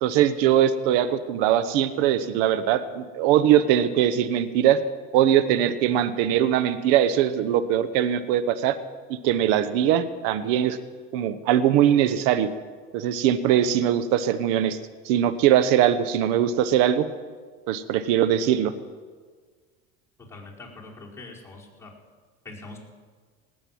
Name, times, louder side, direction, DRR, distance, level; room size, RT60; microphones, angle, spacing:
voice 1, 0.0-4.8 5.1-8.8 9.1-10.8 11.1-12.5 12.9-14.8 15.0-17.0 17.7-18.7, right 10 dB, 70° right, 13 dB, 1.1 m, -21 dB
voice 2, 20.3-21.9 22.4-22.8, left 3 dB, 5° left, -5 dB, 4.9 m, -43 dB
18.5 x 7.7 x 7.7 m, 1.5 s
hypercardioid pair, 85°, 37 cm